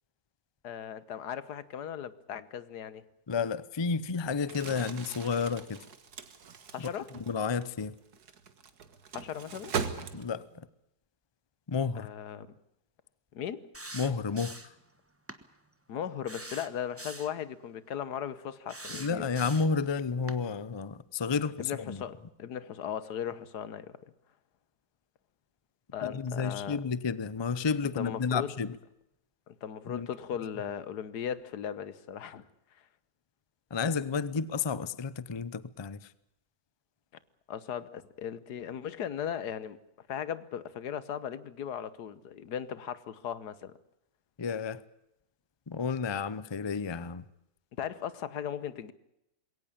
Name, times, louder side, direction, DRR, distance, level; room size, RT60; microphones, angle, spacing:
voice 1, 0.6-3.0 6.7-7.1 9.1-9.7 11.9-12.5 13.3-13.7 15.9-19.3 21.6-24.0 25.9-26.8 28.0-28.5 29.5-32.4 37.5-39.8 40.1-43.7 47.8-48.9, left 9 dB, 85° left, 1.6 m, -37 dB
voice 2, 3.3-5.8 6.8-6.9 7.3-7.9 10.1-10.7 11.7-12.1 13.9-14.7 18.9-22.0 26.0-28.8 29.9-30.1 33.7-36.1 44.4-44.8 45.7-47.2, left 5 dB, 30° left, 0.5 m, -31 dB
Crumpling crinkling, 4.4-10.6, right 6 dB, 75° right, 2.0 m, -40 dB
sound 1, 13.7-14.8 15.3-15.4 16.3-17.4 18.7-19.8 20.3-20.4, right 1 dB, 10° right, 1.1 m, -43 dB
21.5 x 17.5 x 8.6 m
omnidirectional pair, 1.7 m